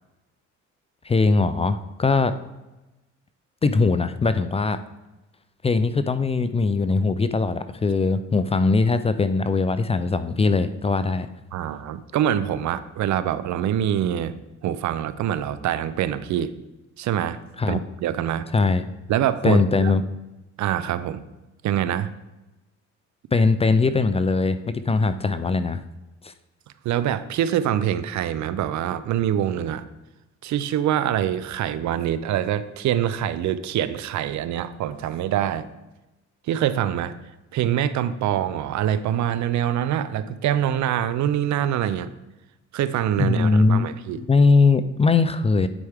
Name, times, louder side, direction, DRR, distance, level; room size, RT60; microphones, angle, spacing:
voice 1, 1.0-2.3 3.6-4.8 5.6-11.3 17.6-17.8 18.5-18.9 19.4-20.0 23.3-25.8 26.2-26.3 43.2-45.7, left 4 dB, 20° left, 12 dB, 0.4 m, -20 dB
voice 2, 11.5-14.3 14.6-16.5 17.0-17.4 17.7-18.5 19.1-19.9 20.6-21.2 21.6-22.1 26.8-29.8 30.4-35.7 36.5-37.1 37.5-42.1 42.7-44.2, right 10 dB, 70° right, 14 dB, 0.5 m, -24 dB
9.8 x 4.6 x 3.5 m, 1.0 s
cardioid pair, 90°, 30 cm